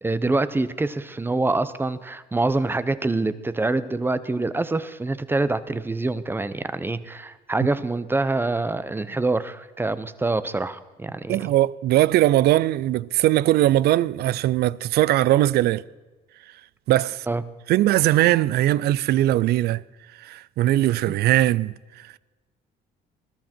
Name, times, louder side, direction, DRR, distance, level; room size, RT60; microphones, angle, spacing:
voice 1, 0.0-11.4 17.3-17.4 21.1-21.2, right 2 dB, 10° right, 0.8 m, -25 dB
voice 2, 11.3-15.8 16.9-17.3 17.7-19.8 20.2-22.2, right 14 dB, 70° right, 0.5 m, -20 dB
20.0 x 13.0 x 4.5 m
cardioid pair, 110°, 17 cm